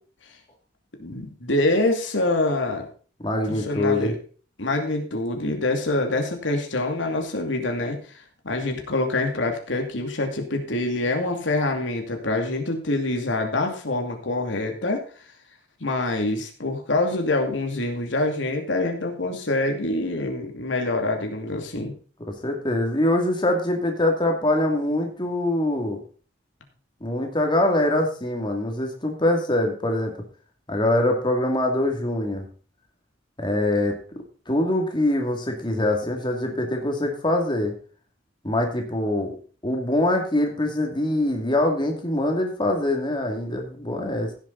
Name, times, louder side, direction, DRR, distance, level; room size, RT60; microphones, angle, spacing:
voice 1, 1.0-2.9 3.5-4.2 4.6-8.0 8.4-15.0 15.8-21.9, left 2 dB, 85° left, 3 dB, 2.5 m, -25 dB
voice 2, 3.2-4.1 22.2-26.0 27.0-30.1 30.7-32.4 33.4-34.0 34.5-37.7 38.4-39.3 39.6-44.3, left 1 dB, 25° left, 2 dB, 2.5 m, -23 dB
16.0 x 7.4 x 4.0 m, 0.39 s
head